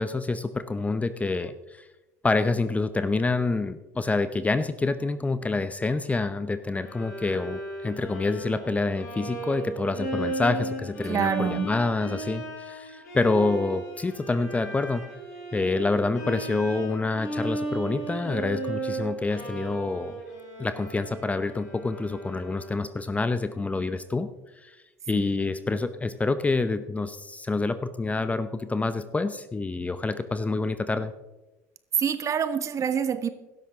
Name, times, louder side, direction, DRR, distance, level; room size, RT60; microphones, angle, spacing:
voice 1, 0.0-1.9 2.2-15.0 15.5-20.2 20.6-24.3 24.6-24.8 25.1-31.1, left 3 dB, 15° left, 12 dB, 0.8 m, -27 dB
Bowed string instrument, 6.8-22.9, right 2 dB, 80° left, 4.8 m, -36 dB
voice 2, 11.1-11.7 32.0-33.3, right 7 dB, 35° right, 12 dB, 1.4 m, -26 dB
16.5 x 13.0 x 3.7 m, 1.0 s
hypercardioid pair, 70°, 9 cm